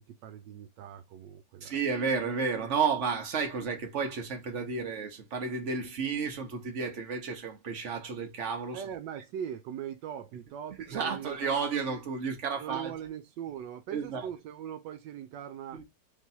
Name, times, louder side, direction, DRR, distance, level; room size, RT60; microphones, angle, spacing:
voice 1, 0.0-1.7 8.7-11.9 12.6-15.8, right 9 dB, 80° right, 1.2 m, -41 dB
voice 2, 1.6-8.9 9.2-9.3 10.9-12.9 13.9-14.3 15.7-15.9, right 5 dB, 45° right, 1.4 m, -32 dB
3.3 x 3.0 x 4.0 m
omnidirectional pair, 1.9 m